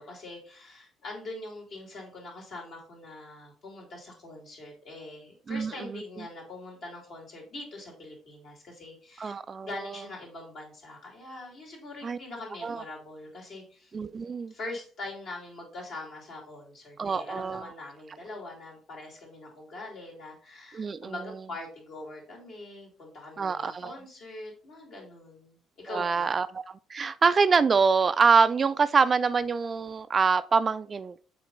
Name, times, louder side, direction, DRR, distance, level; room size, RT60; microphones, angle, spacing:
voice 1, 0.0-13.9 14.5-26.4, left 2 dB, 55° left, 2.9 m, -43 dB
voice 2, 5.5-6.2 9.2-9.7 12.0-12.2 12.6-12.8 13.9-14.5 17.0-17.7 20.7-21.3 23.4-23.9 25.9-31.2, right 5 dB, 35° right, 0.4 m, -25 dB
7.2 x 4.4 x 3.9 m
figure-of-eight pair, 50°, 0 cm